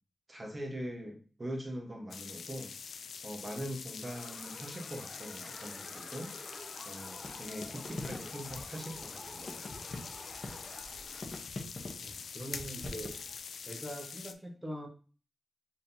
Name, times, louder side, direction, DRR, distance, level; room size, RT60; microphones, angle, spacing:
voice 1, 0.3-2.9 3.2-6.3 6.8-9.7, equal, 30° right, 1 dB, 1.5 m, -42 dB
sound 1, 2.1-14.3, left 6 dB, 90° left, 0.3 m, -45 dB
sound 2, 4.0-11.2, left 1 dB, 20° left, 1.0 m, -51 dB
sound 3, 7.2-13.4, left 2 dB, 45° left, 1.1 m, -45 dB
voice 2, 12.0-13.2 13.6-14.9, right 1 dB, 10° right, 2 dB, 1.3 m, -42 dB
4.8 x 3.9 x 2.9 m, 0.37 s
cardioid pair, 80°, 0 cm